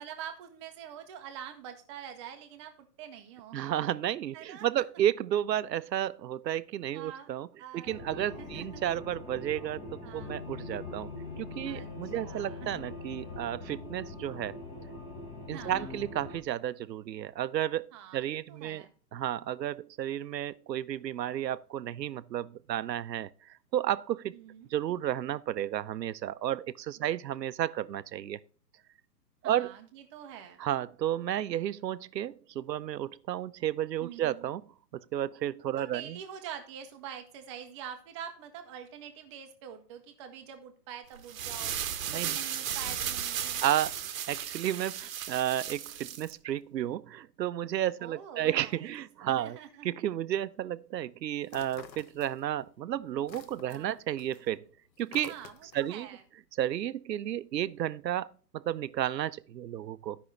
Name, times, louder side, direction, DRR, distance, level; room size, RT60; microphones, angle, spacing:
voice 1, 0.0-3.6 4.3-4.7 6.9-7.3 7.6-8.8 10.0-10.4 11.7-12.9 15.5-16.0 17.9-18.9 24.3-24.7 27.0-27.1 29.4-30.7 34.0-34.5 35.8-41.7 42.1-43.6 48.0-48.9 49.3-49.9 53.7-54.0 55.3-56.2, right 9 dB, 20° right, 0.6 m, -45 dB
voice 2, 3.5-7.5 7.7-11.1 11.4-14.6 15.5-17.9 18.1-18.8 19.1-23.3 23.7-24.4 24.7-28.4 29.4-29.7 30.6-34.6 34.9-36.2 42.1-42.4 43.6-43.9 44.3-49.6 49.8-54.6 55.0-55.3 55.7-56.1 56.6-58.3 58.5-60.2, right 11 dB, 75° right, 0.6 m, -32 dB
sound 1, 7.9-16.4, left 2 dB, 10° left, 0.9 m, -42 dB
sound 2, 41.2-46.3, right 9 dB, 55° right, 0.9 m, -35 dB
sound 3, 51.4-52.7 53.0-55.9, left 8 dB, 85° left, 0.8 m, -51 dB
13.0 x 5.4 x 3.2 m
hypercardioid pair, 130°, 50 cm